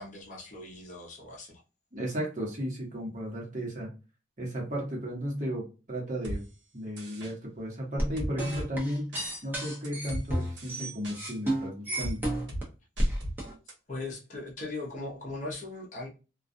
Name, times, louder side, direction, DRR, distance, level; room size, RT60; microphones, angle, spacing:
voice 1, 0.0-1.6 13.9-16.1, left 2 dB, 40° left, 0.7 m, -39 dB
voice 2, 1.9-3.9 4.4-6.4 6.7-9.1 9.4-12.2, equal, 40° right, 1.0 m, -34 dB
sound 1, 6.2-6.4 7.0-7.3 8.2-8.7 9.1-9.3 9.8-10.2 10.6-11.2 12.0-12.1 12.5-12.6 13.0-13.3 13.7-13.8, right 1 dB, 65° right, 1.0 m, -36 dB
sound 2, 8.0-12.6 13.0-13.5, right 1 dB, 10° right, 0.7 m, -31 dB
2.4 x 2.2 x 2.5 m
head